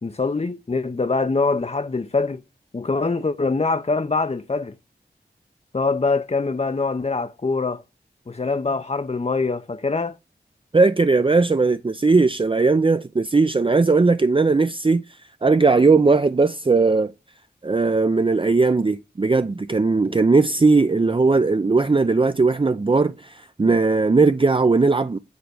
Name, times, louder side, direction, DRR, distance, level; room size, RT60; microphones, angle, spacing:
voice 1, 0.0-2.4 2.7-4.7 5.7-7.8 8.3-10.2, left 3 dB, 35° left, 0.6 m, -24 dB
voice 2, 10.7-15.0 15.4-17.1 17.6-25.2, right 3 dB, 30° right, 0.5 m, -18 dB
8.2 x 3.2 x 6.3 m
cardioid pair, 40°, 18 cm